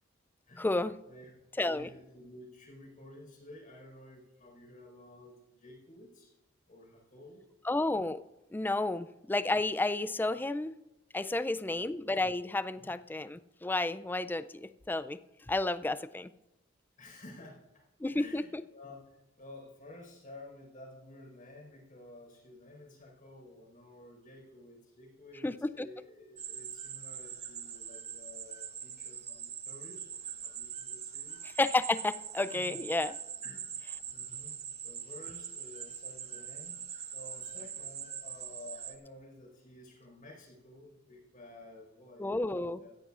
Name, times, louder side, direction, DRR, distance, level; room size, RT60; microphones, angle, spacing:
voice 1, 0.6-1.0 1.6-1.9 7.7-8.2 8.5-10.7 11.1-15.2 15.5-16.3 18.0-18.6 25.4-25.9 31.6-33.1 42.2-42.8, left 2 dB, 10° left, 13 dB, 0.3 m, -31 dB
voice 2, 1.7-6.3 6.7-7.4 11.7-11.9 12.8-12.9 17.0-17.8 18.1-19.0 19.4-30.1 30.4-31.4 32.5-32.8 33.4-34.6 34.8-42.9, left 1 dB, 45° left, -1 dB, 4.7 m, -52 dB
sound 1, 26.4-38.9, right 8 dB, 35° right, 0.7 m, -43 dB
16.5 x 14.5 x 2.5 m, 0.97 s
head